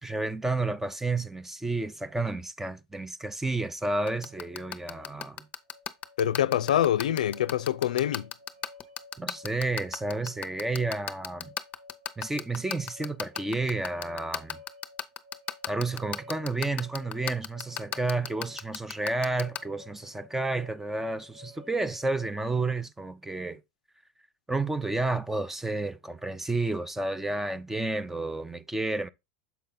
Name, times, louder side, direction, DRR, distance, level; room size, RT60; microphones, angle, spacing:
voice 1, 0.0-5.5 9.2-11.5 12.2-14.6 15.7-23.6 24.5-29.1, right 2 dB, 10° right, 0.6 m, -31 dB
sound 1, 4.0-22.8, left 3 dB, 45° right, 1.3 m, -53 dB
sound 2, 4.1-19.6, left 9 dB, 35° left, 0.7 m, -33 dB
voice 2, 6.2-8.3, left 11 dB, 85° left, 0.4 m, -25 dB
7.0 x 4.2 x 3.8 m
hypercardioid pair, 100°, 4 cm